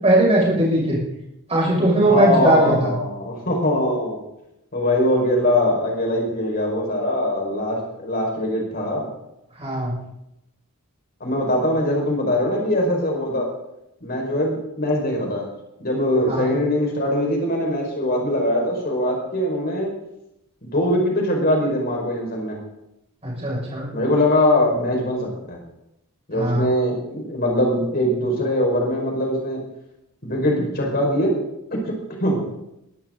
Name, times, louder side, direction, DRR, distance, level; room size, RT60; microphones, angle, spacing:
voice 1, 0.0-1.0 1.5-2.9 9.6-9.9 16.3-16.5 23.2-23.9 26.3-26.7, right 1 dB, 30° right, -4 dB, 6.4 m, -19 dB
voice 2, 2.1-4.2 4.7-9.1 11.2-13.5 14.0-15.5 15.8-19.9 20.6-22.6 23.9-25.6 26.3-29.6 30.2-31.3 31.7-31.9 32.2-32.4, left 1 dB, 45° left, 0 dB, 5.4 m, -22 dB
22.5 x 13.0 x 4.0 m, 0.85 s
head